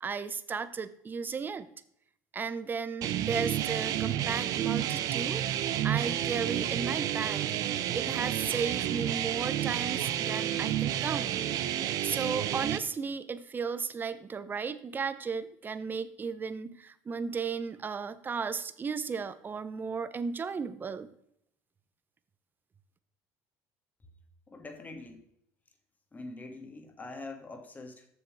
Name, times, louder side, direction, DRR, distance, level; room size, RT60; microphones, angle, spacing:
voice 1, 0.0-1.7 2.3-5.5 5.8-7.4 7.9-11.5 12.0-21.1, right 5 dB, 30° right, 13 dB, 0.8 m, -35 dB
sound 1, 3.0-12.8, right 11 dB, 60° right, 0.7 m, -30 dB
voice 2, 24.5-25.2 26.1-28.1, left 2 dB, 25° left, 6 dB, 1.7 m, -44 dB
7.1 x 6.9 x 4.7 m, 0.72 s
supercardioid pair, 90°, 7 cm